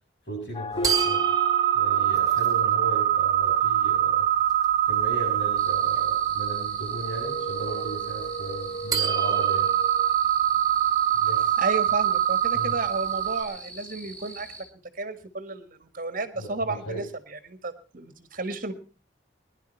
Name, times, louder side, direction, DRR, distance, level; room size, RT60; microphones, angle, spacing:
voice 1, 0.3-1.2 1.7-4.3 4.9-9.7 11.2-11.6 12.5-12.7 16.4-17.0, equal, 70° left, -7 dB, 7.5 m, -36 dB
sound 1, 0.5-2.7 7.1-10.1, equal, 25° left, 0.7 m, -36 dB
sound 2, 0.8-13.4, right 11 dB, 20° right, 2.0 m, -24 dB
sound 3, 5.6-14.6, right 2 dB, 5° left, 7.3 m, -44 dB
voice 2, 11.6-14.5 15.0-18.7, right 3 dB, 50° right, 11 dB, 1.6 m, -32 dB
20.5 x 11.0 x 4.4 m, 0.38 s
head